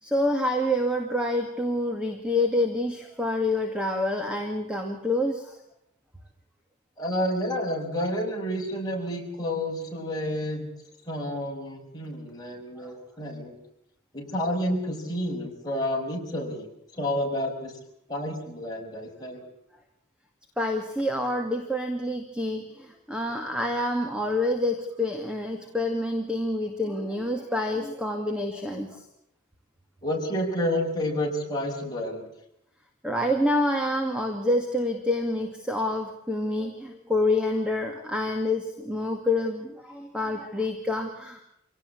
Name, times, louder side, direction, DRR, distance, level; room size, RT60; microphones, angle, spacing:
voice 1, 0.0-5.6 12.8-12.9 20.6-29.0 33.0-41.4, left 1 dB, 5° right, 3 dB, 2.2 m, -27 dB
voice 2, 7.0-10.7 11.1-13.6 14.1-16.7 16.9-17.7 18.1-19.4 30.0-32.3, equal, 20° left, -1 dB, 6.0 m, -30 dB
26.0 x 18.0 x 8.4 m, 0.78 s
head